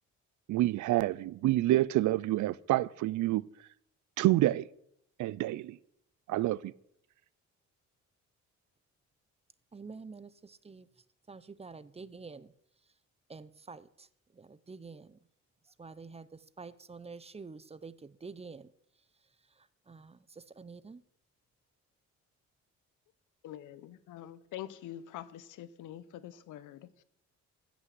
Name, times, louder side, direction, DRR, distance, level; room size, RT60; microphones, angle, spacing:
voice 1, 0.5-3.5 4.2-4.7 5.2-5.8 6.3-6.7, right 15 dB, 75° right, 0.5 m, -28 dB
voice 2, 9.7-10.9 11.3-12.5 13.3-14.1 14.3-15.2 15.8-18.7 19.6-21.0, right 4 dB, 20° right, 0.7 m, -48 dB
voice 3, 23.4-27.0, left 12 dB, 85° left, 0.9 m, -45 dB
15.0 x 6.2 x 7.7 m
cardioid pair, 90°, 30 cm